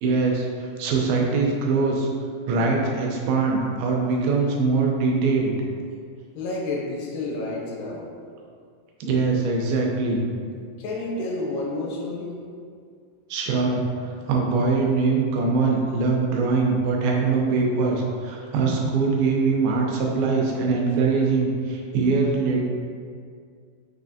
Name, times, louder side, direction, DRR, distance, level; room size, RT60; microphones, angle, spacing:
voice 1, 0.0-2.1 2.5-5.6 9.0-10.2 13.3-22.6, right 4 dB, 80° right, -1 dB, 2.4 m, -22 dB
voice 2, 6.4-8.1 10.8-12.4, left 2 dB, 85° left, -3 dB, 2.7 m, -30 dB
6.3 x 2.8 x 2.7 m, 2.1 s
omnidirectional pair, 4.6 m